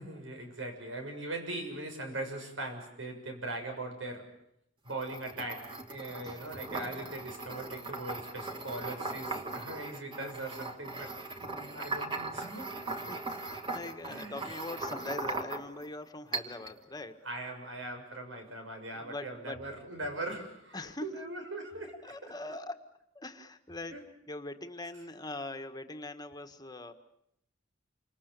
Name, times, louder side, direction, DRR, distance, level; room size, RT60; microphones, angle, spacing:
voice 1, 0.0-4.3 4.8-12.8 14.1-14.6 17.2-22.0 22.2-22.3 23.9-24.0, right 2 dB, 85° right, 5 dB, 6.9 m, -40 dB
sound 1, 4.9-15.9 16.3-16.8, right 3 dB, 25° right, 2.4 m, -39 dB
voice 2, 6.2-6.6 13.1-17.2 18.9-19.6 20.7-21.1 22.0-22.9 23.1-24.0 24.3-26.9, left 2 dB, 20° left, 7 dB, 1.7 m, -42 dB
29.0 x 26.5 x 6.9 m, 0.75 s
head